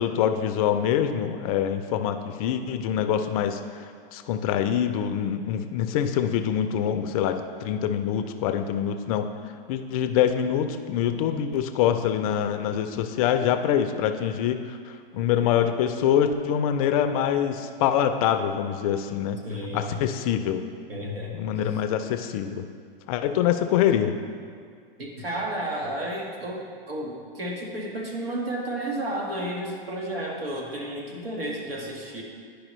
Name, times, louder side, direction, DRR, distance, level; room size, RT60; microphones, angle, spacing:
voice 1, 0.0-3.6 4.1-9.3 9.7-19.4 19.7-20.6 21.3-22.6 23.1-24.1, left 9 dB, 40° left, 8 dB, 0.4 m, -25 dB
voice 2, 19.4-20.0 20.9-21.8 25.0-32.2, right 1 dB, 85° right, -1 dB, 1.6 m, -32 dB
11.0 x 4.9 x 3.1 m, 2.1 s
hypercardioid pair, 125°, 29 cm